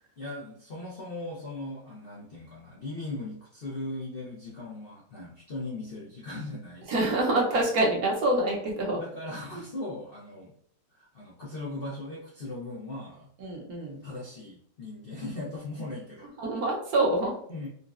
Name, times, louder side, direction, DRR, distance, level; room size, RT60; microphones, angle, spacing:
voice 1, 0.2-7.1 8.9-10.5 10.9-13.3 14.0-16.3 17.5-17.7, left 2 dB, 65° left, -6 dB, 0.5 m, -38 dB
voice 2, 6.9-9.0 9.5-9.6 13.4-14.0 16.4-17.4, right 2 dB, 65° right, -2 dB, 1.0 m, -26 dB
3.8 x 2.1 x 2.3 m, 0.63 s
omnidirectional pair, 1.9 m